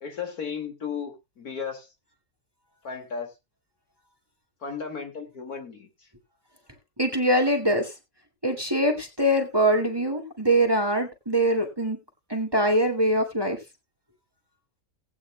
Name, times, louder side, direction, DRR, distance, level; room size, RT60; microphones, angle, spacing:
voice 1, 0.0-1.9 2.8-3.3 4.6-5.9, left 6 dB, 85° left, 4 dB, 2.7 m, -34 dB
voice 2, 7.0-7.9 8.4-12.0 12.3-13.6, right 1 dB, 15° right, 2 dB, 1.9 m, -23 dB
18.5 x 8.9 x 2.2 m, 0.24 s
omnidirectional pair, 1.5 m